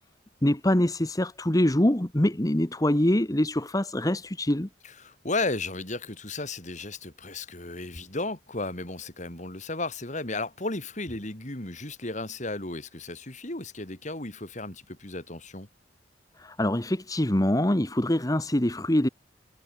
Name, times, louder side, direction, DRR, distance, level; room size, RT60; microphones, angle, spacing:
voice 1, 0.4-4.7 16.4-19.1, left 1 dB, 20° left, 1.3 m, -24 dB
voice 2, 4.8-15.7, left 2 dB, 40° left, 3.9 m, -34 dB
head